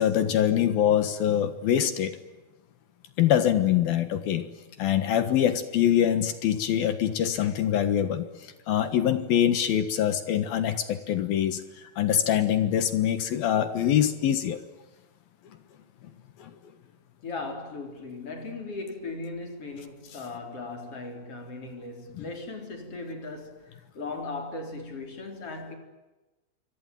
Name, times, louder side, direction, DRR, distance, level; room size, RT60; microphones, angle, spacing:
voice 1, 0.0-2.2 3.2-4.5 4.8-11.6 12.0-14.6 16.4-16.5 22.2-22.3, left 10 dB, 60° left, 2.8 m, -24 dB
voice 2, 17.2-25.8, left 3 dB, 30° left, 4.3 m, -38 dB
27.5 x 23.5 x 9.4 m
omnidirectional pair, 5.6 m